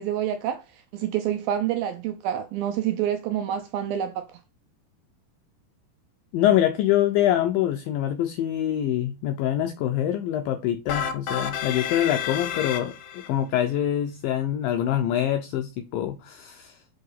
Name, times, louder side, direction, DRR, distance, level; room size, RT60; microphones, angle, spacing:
voice 1, 0.0-4.3, right 10 dB, 85° right, 2.1 m, -27 dB
voice 2, 6.3-16.8, left 11 dB, 90° left, 2.0 m, -25 dB
sound 1, 10.9-13.3, left 8 dB, 65° left, 2.0 m, -30 dB
6.7 x 4.9 x 5.5 m
omnidirectional pair, 4.8 m